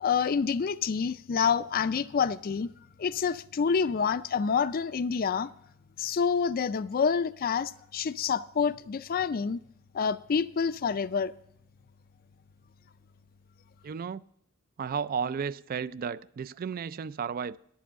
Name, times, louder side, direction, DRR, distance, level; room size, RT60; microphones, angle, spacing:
voice 1, 0.0-2.7 3.0-5.5 6.0-9.6 9.9-11.3, left 6 dB, 45° left, 0.4 m, -27 dB
voice 2, 13.8-14.2 14.8-17.6, right 6 dB, 45° right, 0.3 m, -33 dB
11.5 x 7.6 x 6.8 m
head